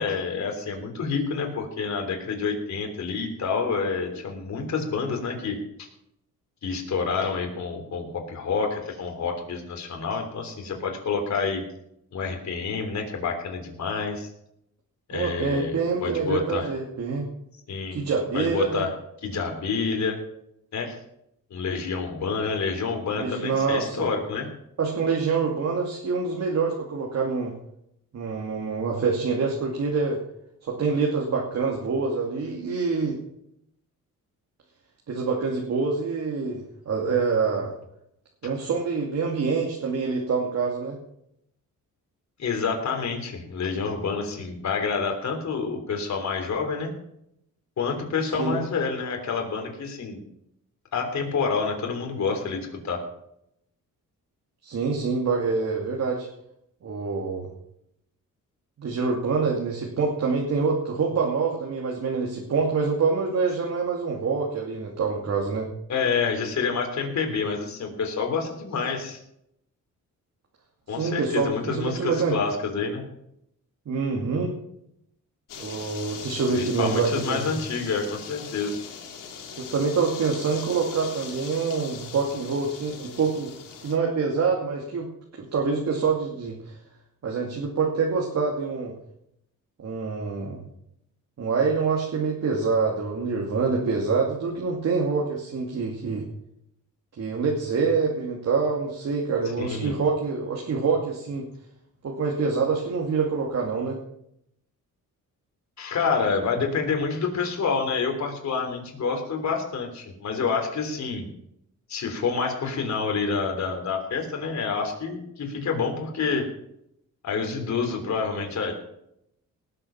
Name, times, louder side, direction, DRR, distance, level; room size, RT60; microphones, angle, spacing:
voice 1, 0.0-5.9 6.6-11.6 12.1-14.3 15.1-16.7 17.7-18.0 18.3-18.9 19.2-20.2 20.7-20.9 21.5-24.5 42.4-46.9 47.8-50.2 50.9-53.0 65.9-69.2 70.9-73.0 76.5-78.8 99.6-99.9 105.8-111.3 111.9-116.5 117.2-118.7, left 5 dB, 60° left, 3 dB, 3.5 m, -28 dB
voice 2, 15.1-17.3 17.9-18.8 23.1-24.1 24.8-27.5 28.1-30.2 30.6-33.2 35.1-37.7 38.4-41.0 48.4-48.6 54.6-56.3 56.8-57.5 58.8-65.7 71.0-72.4 73.9-74.6 75.6-77.5 79.6-83.5 83.8-85.1 85.4-86.8 87.2-88.9 89.8-90.6 91.4-96.3 97.2-101.5 102.0-104.0, right 4 dB, 55° right, -1 dB, 2.5 m, -26 dB
sound 1, 75.5-84.0, left 6 dB, 80° left, 2.5 m, -40 dB
18.5 x 7.7 x 5.9 m, 0.77 s
cardioid pair, 105°, 32 cm